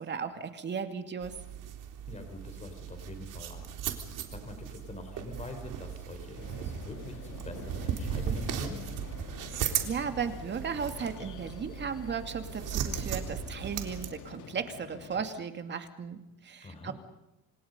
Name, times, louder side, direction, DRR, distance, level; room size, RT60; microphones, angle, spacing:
voice 1, 0.0-1.4 9.4-16.9, right 6 dB, 30° right, 7 dB, 2.5 m, -36 dB
sound 1, 1.2-14.1, right 8 dB, 60° right, 3.7 m, -37 dB
voice 2, 2.1-3.7 4.0-8.8 16.6-16.9, left 2 dB, 20° left, 5 dB, 4.1 m, -44 dB
sound 2, 5.5-13.1, left 5 dB, 35° left, 1.9 m, -53 dB
sound 3, 6.3-15.3, left 9 dB, 55° left, 2.5 m, -48 dB
29.5 x 27.0 x 5.4 m, 0.95 s
cardioid pair, 175°, 35 cm